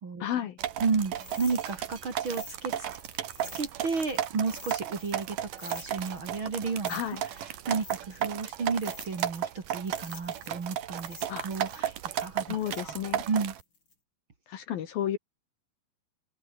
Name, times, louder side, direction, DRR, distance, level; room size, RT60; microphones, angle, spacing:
voice 1, 0.2-0.6 6.9-7.2 11.3-11.5 12.5-13.2 14.5-15.2, left 10 dB, 65° left, 3.1 m, -32 dB
sound 1, 0.6-13.6, right 11 dB, 60° right, 2.8 m, -34 dB
voice 2, 0.8-2.8 3.5-12.5 12.8-13.0 13.3-13.5, right 4 dB, 35° right, 2.9 m, -32 dB
sound 2, 1.1-5.3 5.6-9.5 9.8-13.9, left 3 dB, 25° left, 6.4 m, -49 dB
open air
omnidirectional pair, 5.0 m